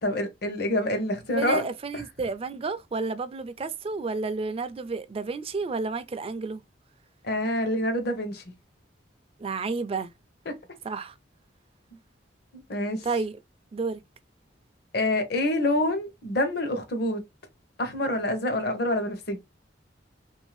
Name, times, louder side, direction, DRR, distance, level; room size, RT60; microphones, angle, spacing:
voice 1, 0.0-1.6 1.9-2.0 7.2-8.4 10.5-10.6 12.7-13.1 14.9-17.2 17.8-19.4, left 1 dB, 60° left, 0.9 m, -26 dB
voice 2, 1.3-6.6 9.4-10.1 10.8-11.1 13.0-13.4 13.7-14.0, right 4 dB, 30° right, 0.4 m, -31 dB
3.2 x 2.6 x 3.1 m
head